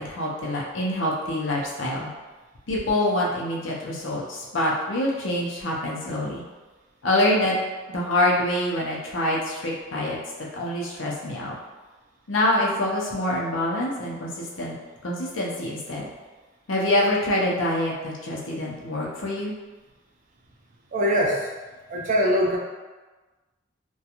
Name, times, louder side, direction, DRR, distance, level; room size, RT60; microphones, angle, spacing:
voice 1, 0.0-2.1 2.7-6.4 7.0-7.6 7.9-10.2 10.5-11.6 12.3-14.8 15.0-16.1 16.7-19.5, left 1 dB, 80° left, -4 dB, 0.6 m, -25 dB
voice 2, 20.9-21.5 21.9-22.6, equal, 40° right, -2 dB, 0.4 m, -22 dB
2.4 x 2.2 x 2.8 m, 1.2 s
head